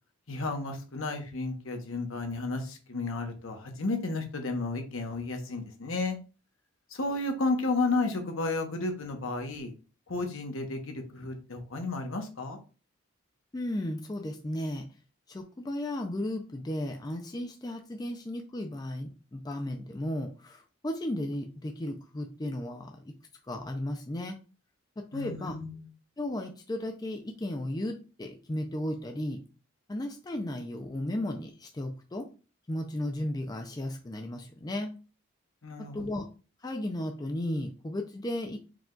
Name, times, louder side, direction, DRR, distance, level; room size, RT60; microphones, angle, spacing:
voice 1, 0.3-6.2 6.9-9.7 10.1-12.6 25.1-25.9 35.6-36.1, left 3 dB, 70° left, 4 dB, 1.0 m, -32 dB
voice 2, 13.5-14.9 15.3-23.1 23.5-24.4 25.0-25.6 26.2-29.4 29.9-32.3 32.7-34.9 35.8-36.2 36.6-38.6, left 1 dB, 20° left, 4 dB, 0.4 m, -35 dB
4.7 x 2.3 x 3.8 m, 0.34 s
head